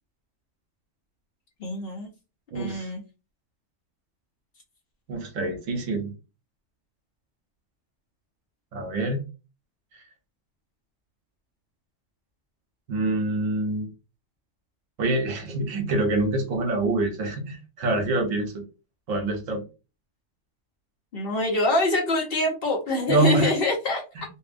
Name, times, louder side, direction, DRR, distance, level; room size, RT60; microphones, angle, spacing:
voice 1, 1.6-2.1 2.5-3.0 21.1-24.0, left 1 dB, 55° left, 0 dB, 0.9 m, -25 dB
voice 2, 2.5-2.9 5.1-6.1 8.7-9.2 12.9-13.9 15.0-18.6 19.1-19.6 23.1-23.5 24.2-24.3, right 2 dB, 80° right, 5 dB, 1.1 m, -25 dB
2.7 x 2.1 x 2.4 m, 0.31 s
omnidirectional pair, 1.3 m